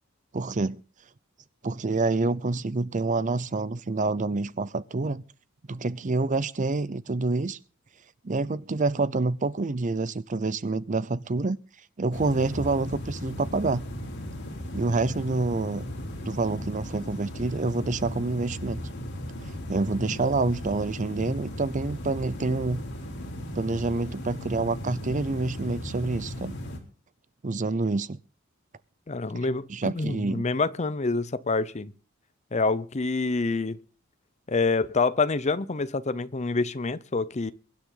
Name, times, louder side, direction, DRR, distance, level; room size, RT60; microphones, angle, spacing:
voice 1, 0.3-0.8 1.6-5.2 5.7-7.6 8.2-11.6 12.0-13.9 14.7-15.9 16.2-18.8 19.4-22.8 23.5-26.5 27.4-28.2 29.7-30.4, right 3 dB, 40° right, 0.6 m, -27 dB
sound 1, 12.1-26.8, left 1 dB, 60° left, 3.3 m, -37 dB
voice 2, 29.1-31.9 32.5-33.8 34.5-37.5, left 3 dB, 35° left, 0.7 m, -27 dB
23.0 x 9.9 x 3.9 m
head